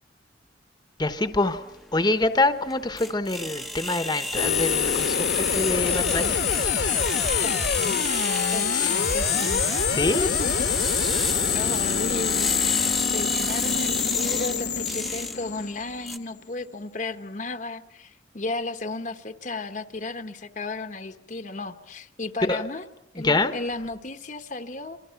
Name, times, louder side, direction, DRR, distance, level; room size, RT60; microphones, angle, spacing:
voice 1, 1.0-1.6 1.9-6.4 8.7-8.9 9.9-10.3 11.2-11.4 22.5-22.6 23.2-23.5, left 2 dB, 20° left, 10 dB, 1.1 m, -25 dB
sound 1, 1.5-16.2, left 1 dB, ahead, 0.9 m, -33 dB
sound 2, 4.4-16.3, left 7 dB, 65° left, 1.3 m, -25 dB
voice 2, 7.4-8.1 8.5-9.7 10.2-10.7 11.5-12.8 13.1-22.9 23.1-25.0, left 2 dB, 45° left, 8 dB, 1.1 m, -34 dB
28.5 x 23.5 x 5.9 m, 0.85 s
head